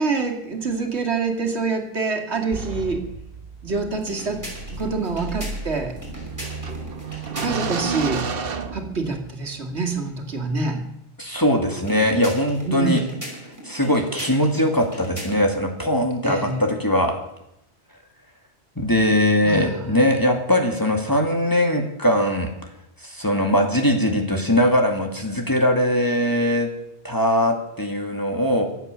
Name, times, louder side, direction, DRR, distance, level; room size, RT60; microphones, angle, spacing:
voice 1, 0.0-3.0 3.6-4.4 4.7-5.9 7.4-8.2 8.7-10.8 12.7-13.0 16.2-16.6 19.4-19.9, right 4 dB, 80° right, 3 dB, 2.5 m, -26 dB
sound 1, 2.5-9.4, right 4 dB, 60° right, 1.3 m, -31 dB
sound 2, 3.9-7.8 11.7-15.6, equal, 15° right, 5.2 m, -39 dB
voice 2, 11.2-13.0 13.6-17.2 18.8-22.5 23.0-26.7 27.0-28.6, equal, 20° left, 2 dB, 2.2 m, -21 dB
24.0 x 8.3 x 6.8 m, 0.82 s
omnidirectional pair, 1.1 m